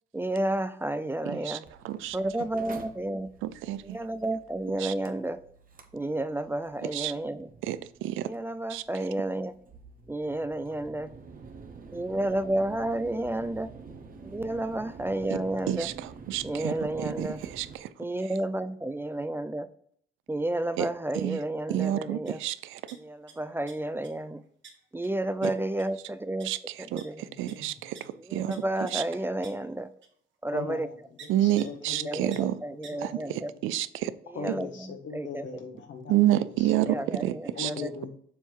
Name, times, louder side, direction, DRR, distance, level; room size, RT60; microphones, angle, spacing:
voice 1, 0.1-1.6 2.1-3.3 3.8-5.4 5.9-7.5 8.2-9.5 10.1-11.1 11.9-13.7 14.2-15.9 16.4-17.4 18.0-19.7 20.3-22.4 22.9-24.4 24.9-26.5 26.8-27.2 28.2-29.9 30.4-30.9 32.0-33.5 34.2-35.5 36.8-37.9, right 1 dB, 10° right, 12 dB, 0.3 m, -31 dB
voice 2, 1.3-1.6 1.8-2.2 3.4-4.0 4.8-4.9 6.9-7.1 7.6-8.3 8.7-8.8 15.3-15.4 15.7-17.9 20.8-20.9 21.1-21.4 21.7-22.8 25.4-25.5 26.4-28.6 28.9-29.0 31.3-32.6 33.0-34.1 34.5-34.6 36.1-37.7, right 13 dB, 90° right, 16 dB, 0.4 m, -29 dB
Mechanical fan, 1.7-17.8, right 5 dB, 45° right, 1.0 m, -48 dB
sound 1, 22.2-22.4 22.7-23.3 23.7-24.1 24.6-24.7 25.0-25.1 25.4-25.5 25.8-26.0 26.4-26.5 27.0-27.1 27.5-27.6 27.9-28.0 28.5-28.6 28.9-29.0 29.4-29.5 30.0-30.1 31.2-31.3 31.6-31.7 31.9-32.0 32.3-32.4 32.8-32.9, right 6 dB, 65° right, 1.6 m, -47 dB
voice 3, 31.4-32.4 32.7-33.4 34.3-36.1 36.7-36.9 37.5-38.1, left 5 dB, 70° left, 3 dB, 1.5 m, -39 dB
7.1 x 3.6 x 4.5 m, 0.64 s
cardioid pair, 90°, 20 cm